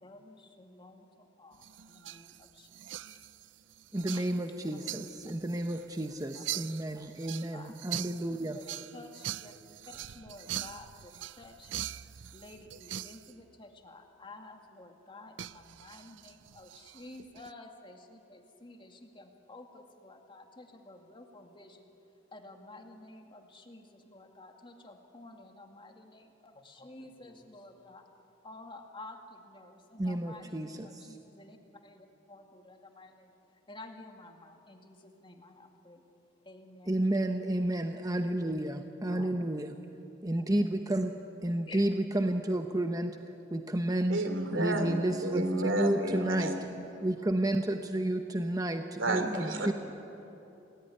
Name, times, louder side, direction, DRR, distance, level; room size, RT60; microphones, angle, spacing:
voice 1, 0.0-3.3 4.1-4.2 4.7-5.4 6.3-6.9 7.5-7.7 8.5-8.7 8.9-9.5 9.8-11.7 12.1-28.1 28.4-31.6 31.8-36.1 36.4-37.4 37.9-38.0 39.1-39.6 41.7-41.9, left 2 dB, 25° left, 4 dB, 2.3 m, -51 dB
sound 1, 1.5-13.3 15.4-17.5, right 12 dB, 70° right, 0.5 m, -43 dB
voice 2, 3.9-8.6 30.0-30.9 36.9-39.7 40.2-41.1 41.4-43.2 43.5-44.2 44.5-45.4 45.8-46.5 47.0-49.7, right 1 dB, 20° right, 6 dB, 1.0 m, -31 dB
voice 3, 44.1-46.8 49.0-49.7, right 1 dB, 90° right, 7 dB, 3.1 m, -31 dB
29.0 x 19.5 x 10.0 m, 2.9 s
head